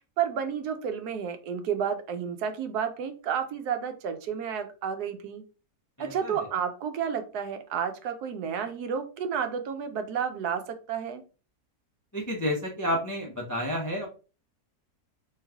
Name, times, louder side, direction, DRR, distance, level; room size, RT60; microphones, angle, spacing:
voice 1, 0.2-5.4 6.0-11.2, right 7 dB, 75° right, 8 dB, 1.1 m, -31 dB
voice 2, 6.0-6.5 12.1-14.1, equal, 25° left, 0 dB, 0.3 m, -30 dB
3.2 x 3.1 x 3.4 m, 0.35 s
omnidirectional pair, 1.8 m